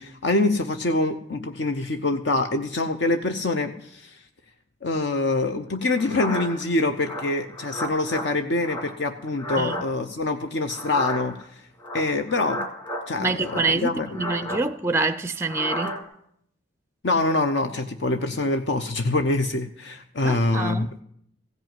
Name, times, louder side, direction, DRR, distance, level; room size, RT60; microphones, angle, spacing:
voice 1, 0.0-4.2 4.8-11.6 11.9-12.7 13.1-14.2 17.0-20.9, left 2 dB, 60° left, 0.7 m, -25 dB
sound 1, 5.9-6.6 7.0-8.3 8.6-9.9 10.7-11.4 11.8-13.1 13.4-14.7 15.4-16.0, left 1 dB, 25° left, 2.2 m, -33 dB
voice 2, 13.2-16.0 20.2-20.9, right 3 dB, 15° right, 0.4 m, -26 dB
15.5 x 5.4 x 9.1 m
head